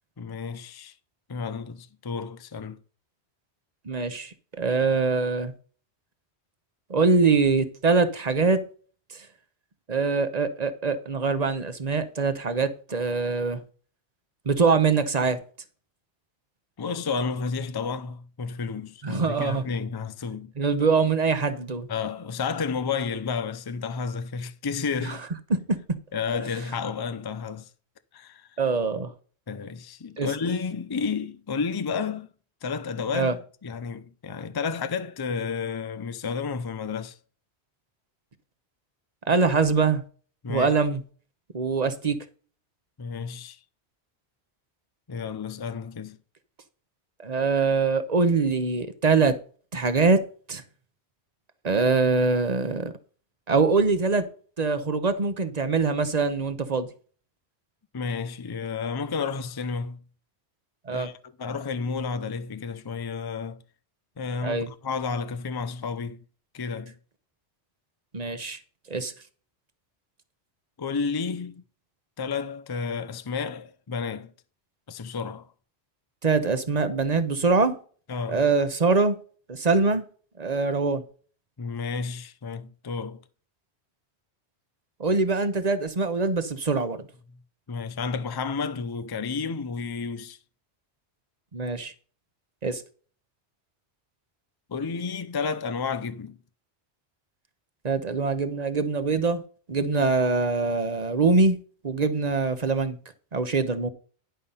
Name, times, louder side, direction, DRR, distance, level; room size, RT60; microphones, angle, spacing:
voice 1, 0.2-0.9 1.3-2.8 16.8-20.5 21.9-25.2 26.1-27.7 28.1-28.6 29.5-32.3 32.6-37.2 40.4-40.7 43.0-43.6 45.1-46.2 57.9-60.0 60.9-63.6 64.2-66.2 66.5-66.9 70.8-71.6 72.2-74.3 74.9-75.5 78.1-78.4 81.6-83.2 87.7-90.4 94.7-96.4, left 5 dB, 30° left, 0.5 m, -31 dB
voice 2, 3.8-5.5 6.9-8.6 9.1-9.3 9.9-13.6 14.5-15.4 19.0-19.6 20.6-21.9 25.0-25.2 25.5-25.6 28.6-29.1 30.2-30.3 33.1-33.3 39.3-40.0 40.5-41.0 41.5-42.2 47.2-49.4 49.7-50.6 51.6-52.9 53.5-54.3 54.6-56.9 60.9-61.1 64.4-64.7 68.1-68.6 68.9-69.1 76.2-77.8 78.3-79.2 79.5-80.0 80.4-81.0 85.0-87.0 91.5-91.9 92.6-92.8 97.8-99.4 99.7-101.6 101.8-103.0 103.3-103.9, right 4 dB, 40° right, 1.1 m, -23 dB
10.5 x 5.6 x 5.5 m
omnidirectional pair, 1.1 m